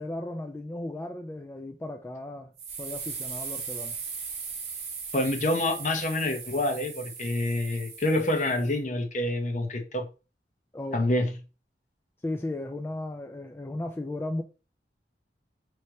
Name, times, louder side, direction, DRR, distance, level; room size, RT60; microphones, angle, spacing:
voice 1, 0.0-2.5 2.8-4.0 10.7-11.2 12.2-14.4, left 1 dB, 15° left, 0.3 m, -35 dB
sound 1, 2.6-8.7, right 5 dB, 35° right, 1.2 m, -38 dB
voice 2, 5.1-10.1 10.9-11.4, left 1 dB, 45° left, 0.8 m, -27 dB
3.2 x 2.8 x 4.6 m
head